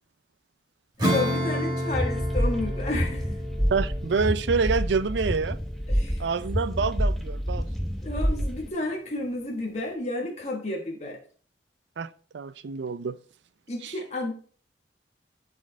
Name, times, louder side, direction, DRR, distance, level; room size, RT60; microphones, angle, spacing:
voice 1, 1.0-3.3 5.9-6.2 8.0-11.2 13.7-14.3, left 2 dB, 35° left, 1.3 m, -31 dB
Acoustic guitar / Strum, 1.0-7.0, equal, 25° right, 2.3 m, -31 dB
sound 1, 1.9-8.7, equal, ahead, 0.8 m, -28 dB
voice 2, 3.7-5.6 6.2-7.7 12.0-12.1 12.3-13.2 13.8-13.9, right 5 dB, 75° right, 0.4 m, -27 dB
10.5 x 4.4 x 3.8 m
head